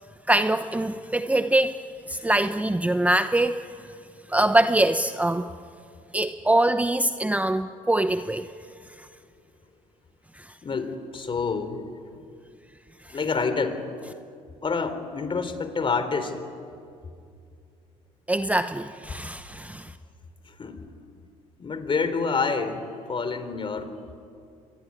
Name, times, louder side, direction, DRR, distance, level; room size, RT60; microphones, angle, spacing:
voice 1, 0.3-1.8 2.1-3.7 4.3-5.5 6.1-8.5 10.4-10.5 13.1-13.2 18.3-19.9, right 1 dB, 10° right, 0.9 m, -23 dB
voice 2, 10.6-11.8 13.1-13.8 14.6-16.4 20.5-20.8 21.6-23.9, left 4 dB, 35° left, 3.7 m, -28 dB
26.0 x 23.0 x 9.7 m
supercardioid pair, 70°, 16 cm